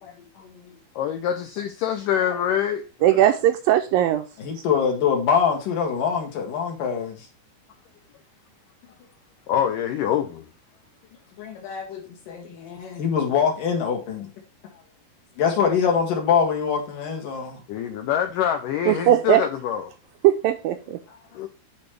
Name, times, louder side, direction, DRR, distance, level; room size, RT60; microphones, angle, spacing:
voice 1, 0.0-0.8 4.4-7.3 11.4-14.3 15.4-17.6 21.1-21.2, left 7 dB, 60° left, 3.1 m, -24 dB
voice 2, 1.0-2.8 9.5-10.5 17.7-19.9 21.3-21.5, left 9 dB, 80° left, 1.9 m, -25 dB
voice 3, 3.0-4.2 18.9-19.4 20.2-21.0, right 12 dB, 80° right, 2.2 m, -19 dB
10.5 x 4.1 x 3.3 m
omnidirectional pair, 4.5 m